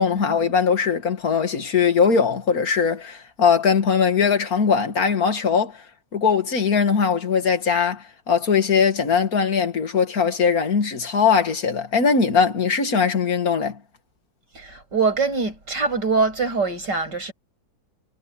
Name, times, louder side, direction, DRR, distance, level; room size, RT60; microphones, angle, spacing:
voice 1, 0.0-5.8 6.1-13.8, left 6 dB, 55° left, 2.5 m, -20 dB
voice 2, 14.5-17.3, right 4 dB, 75° right, 8.4 m, -23 dB
omnidirectional pair, 1.9 m